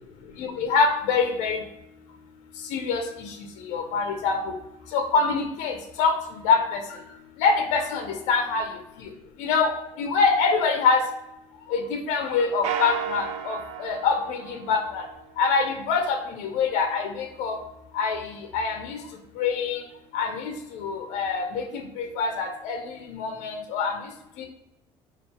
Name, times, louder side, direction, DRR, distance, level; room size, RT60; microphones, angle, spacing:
voice 1, 0.4-1.6 2.7-3.0 3.7-4.5 4.9-6.1 6.4-6.8 7.4-8.6 9.4-9.7 10.0-11.0 11.7-15.0 15.4-17.6 17.9-18.2 18.5-19.0 19.4-19.8 20.1-23.9 24.4-24.5, left 5 dB, 70° left, 4 dB, 0.6 m, -25 dB
sound 1, 12.6-15.3, right 9 dB, 65° right, 0.4 m, -34 dB
3.5 x 2.5 x 4.2 m, 0.89 s
cardioid pair, 180°, 12 cm